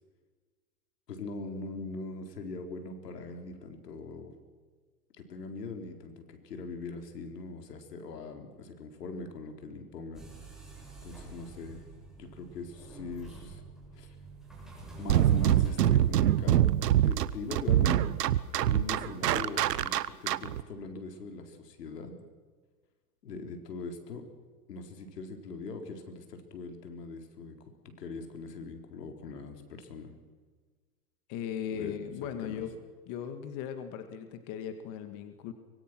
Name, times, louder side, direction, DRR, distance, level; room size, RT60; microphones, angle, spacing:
voice 1, 1.1-4.3 5.2-10.3 11.0-11.8 12.2-13.6 13.9-14.1 15.0-16.7 17.0-18.1 18.7-22.2 23.2-24.3 24.7-27.6 27.8-30.1 31.7-32.6, left 3 dB, 85° left, 5 dB, 4.2 m, -41 dB
sound 1, 10.1-16.0, right 3 dB, ahead, 7.9 m, -47 dB
sound 2, 15.1-20.6, right 12 dB, 80° right, 1.1 m, -24 dB
voice 2, 31.3-32.8 33.1-35.5, left 8 dB, 40° left, 8 dB, 2.0 m, -38 dB
24.5 x 22.5 x 6.2 m, 1.4 s
hypercardioid pair, 130°, 47 cm